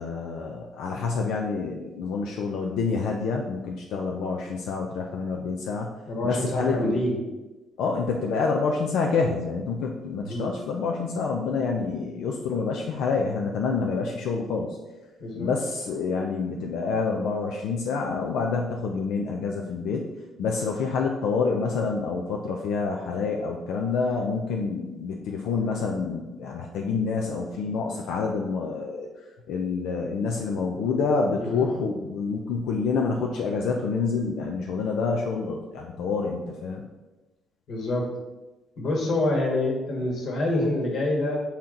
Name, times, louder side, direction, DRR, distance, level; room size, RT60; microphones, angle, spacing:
voice 1, 0.0-5.9 6.2-7.0 7.8-14.8 15.3-20.0 20.4-29.1 29.5-36.8, left 4 dB, 85° left, 1 dB, 0.6 m, -27 dB
voice 2, 6.1-7.1 10.2-10.5 15.2-15.5 31.4-31.7 37.7-38.1 38.8-41.4, left 1 dB, 50° left, 0 dB, 1.6 m, -26 dB
7.3 x 4.3 x 3.8 m, 1.1 s
cardioid pair, 155°, 0 cm